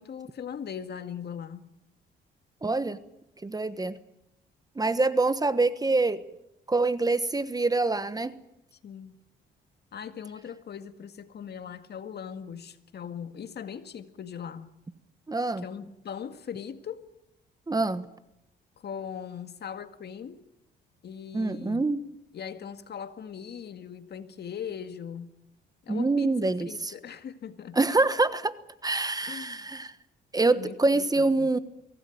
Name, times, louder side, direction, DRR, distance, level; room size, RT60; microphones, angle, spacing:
voice 1, 0.0-1.7 8.8-9.1 9.9-14.8 15.6-17.1 18.8-20.4 21.0-21.8 22.3-25.3 25.8-27.8 29.2-29.6 30.6-31.5, left 8 dB, 55° left, 2.0 m, -40 dB
voice 2, 2.6-3.0 3.4-4.0 4.8-6.2 6.7-8.3 15.3-15.6 17.7-18.1 21.3-22.0 25.9-26.7 27.7-28.5 28.8-29.9 30.3-31.6, right 3 dB, 20° right, 1.2 m, -25 dB
23.5 x 17.5 x 9.1 m
cardioid pair, 90°, 20 cm